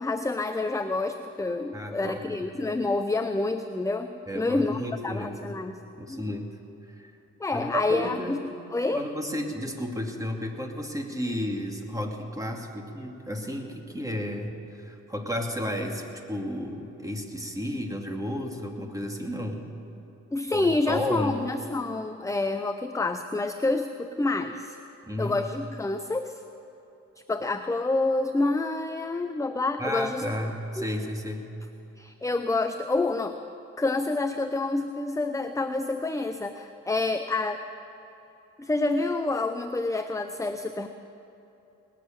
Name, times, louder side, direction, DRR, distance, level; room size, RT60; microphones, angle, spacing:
voice 1, 0.0-4.1 4.3-5.7 6.1-6.3 7.4-8.4 8.7-9.1 20.3-24.8 25.2-26.4 27.3-30.2 30.8-30.9 32.0-33.4 33.8-37.6 38.6-40.9, left 2 dB, 10° left, 8 dB, 0.7 m, -28 dB
voice 2, 1.7-2.4 4.3-5.6 6.0-6.5 7.0-7.1 7.5-8.4 8.9-19.7 20.5-21.4 25.1-25.4 29.8-31.5, equal, 10° right, 2 dB, 2.4 m, -33 dB
19.5 x 7.6 x 8.9 m, 2.9 s
supercardioid pair, 60°, 32 cm